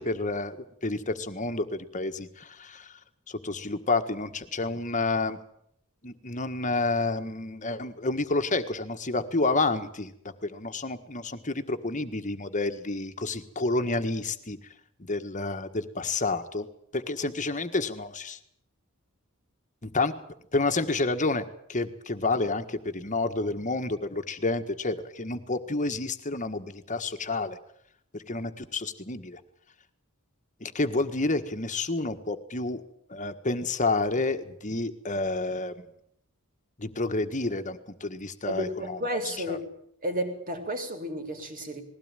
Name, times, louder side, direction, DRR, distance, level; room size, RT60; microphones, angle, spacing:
voice 1, 0.0-2.9 3.3-5.4 6.0-10.1 10.4-14.6 15.0-16.7 16.9-18.4 19.8-20.1 20.5-21.4 21.7-27.6 28.1-29.4 30.6-32.8 33.1-35.9 36.8-39.0 39.5-39.6, left 3 dB, 35° left, 9 dB, 1.6 m, -29 dB
voice 2, 38.5-39.7 40.0-41.8, equal, 40° right, 4 dB, 3.7 m, -32 dB
20.5 x 16.5 x 9.1 m, 0.69 s
head